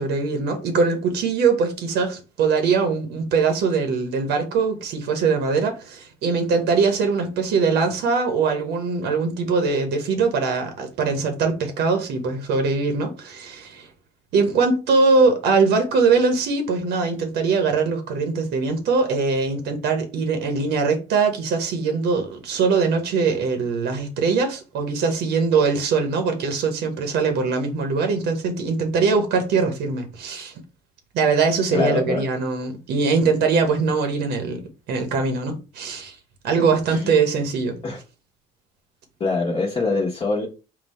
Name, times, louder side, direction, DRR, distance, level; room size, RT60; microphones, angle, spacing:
voice 1, 0.0-13.9 14.3-30.5 31.1-34.6 34.9-36.1 36.4-37.8, right 4 dB, 80° right, 0.9 m, -22 dB
voice 2, 31.7-32.2 36.9-37.2 37.8-38.0 39.2-40.5, left 3 dB, 35° left, 1.0 m, -24 dB
3.9 x 2.3 x 4.1 m
cardioid pair, 110°, 17 cm